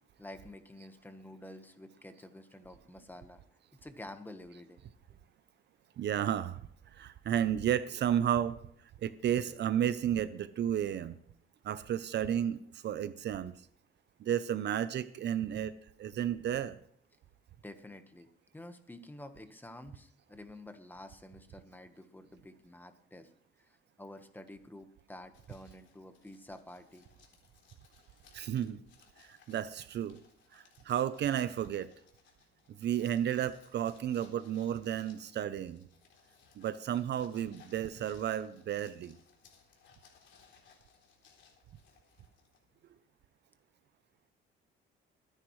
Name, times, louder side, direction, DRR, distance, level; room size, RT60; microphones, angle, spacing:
voice 1, 0.2-3.4 3.7-4.8 17.6-18.3 18.5-23.3 23.6-27.1, left 1 dB, 10° left, 8 dB, 1.3 m, -50 dB
voice 2, 6.0-6.6 6.9-8.6 9.0-11.2 11.6-13.5 14.2-15.7 16.0-16.8 28.3-28.8 29.2-30.2 30.5-31.9 32.7-35.9 36.6-39.2, right 10 dB, 55° right, 14 dB, 0.6 m, -32 dB
sound 1, 25.3-42.8, left 6 dB, 60° left, 3.5 m, -64 dB
23.5 x 10.0 x 3.2 m, 0.66 s
cardioid pair, 115°, 21 cm